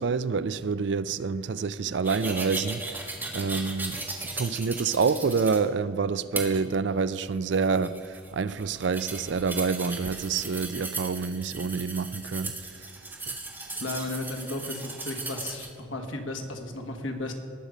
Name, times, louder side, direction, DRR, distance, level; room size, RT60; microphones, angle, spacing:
voice 1, 0.0-3.0 3.3-4.0 4.3-12.6 13.3-13.4, right 5 dB, 65° right, 0.4 m, -27 dB
Ceramic scraping rx, 2.0-5.6 6.4-6.5 7.2-15.7, right 2 dB, 10° right, 1.5 m, -37 dB
voice 2, 13.8-17.3, left 2 dB, 85° left, 1.7 m, -34 dB
19.5 x 6.7 x 5.0 m
head